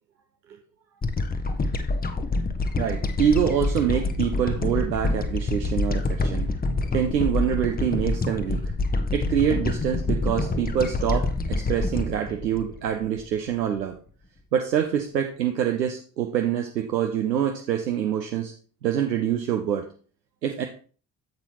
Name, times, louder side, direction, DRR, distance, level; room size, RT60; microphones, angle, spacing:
sound 1, 1.0-13.5, left 2 dB, 20° left, 0.8 m, -27 dB
voice 1, 2.8-6.5 6.9-8.6 9.1-14.0 14.5-18.5 18.8-19.9 20.4-20.7, right 9 dB, 85° right, 4 dB, 0.6 m, -25 dB
7.6 x 7.2 x 2.9 m, 0.40 s
figure-of-eight pair, 45°, 49 cm